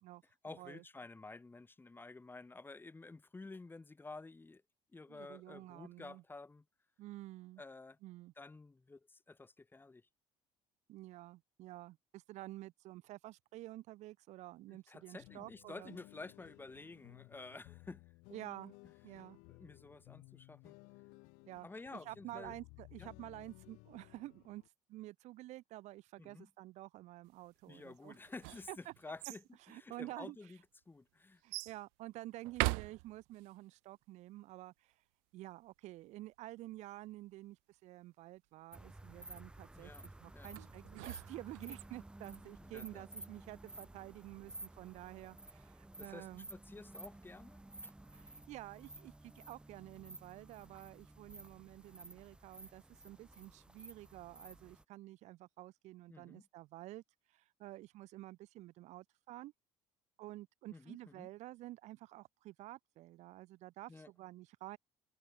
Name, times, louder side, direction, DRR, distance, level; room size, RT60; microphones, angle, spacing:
voice 1, 0.4-4.6 4.9-6.6 7.6-8.0 8.4-10.0 14.7-18.0 19.5-20.8 21.6-22.6 23.0-23.1 26.2-26.5 27.7-30.6 30.9-31.4 39.7-40.1 40.3-40.6 42.6-43.1 46.0-47.9 56.1-56.5 60.7-61.3 63.9-64.1, left 3 dB, 15° left, 2.4 m, -51 dB
voice 2, 5.1-6.2 7.0-7.6 8.0-8.3 10.9-16.0 18.3-18.7 19.0-19.4 21.5-24.6 24.9-28.2 28.7-28.9 29.6-30.4 31.4-34.9 35.3-46.5 48.1-57.0 57.3-59.5 60.2-64.8, right 17 dB, 65° right, 0.9 m, -50 dB
sound 1, 15.2-24.7, left 28 dB, 80° left, 0.7 m, -58 dB
sound 2, 28.1-29.4 30.3-30.4 31.5-31.8 32.4-33.5 40.6-41.8, right 40 dB or more, 85° right, 0.4 m, -40 dB
sound 3, 38.7-54.8, right 2 dB, 5° right, 0.7 m, -54 dB
supercardioid pair, 95°, 13 cm